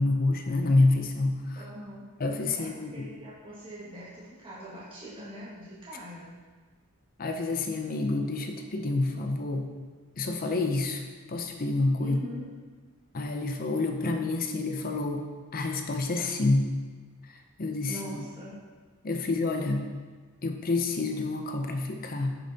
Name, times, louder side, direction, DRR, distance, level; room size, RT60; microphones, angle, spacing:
voice 1, 0.0-1.6 2.2-3.1 7.2-9.7 10.2-11.0 11.3-12.2 13.1-15.2 15.5-16.7 17.6-18.3 19.0-19.9 20.4-22.3, left 2 dB, 40° left, 5 dB, 0.6 m, -28 dB
voice 2, 1.5-2.1 2.7-6.3 12.0-12.5 17.9-18.5, equal, 25° right, -9 dB, 1.9 m, -42 dB
10.5 x 6.9 x 2.8 m, 1.4 s
head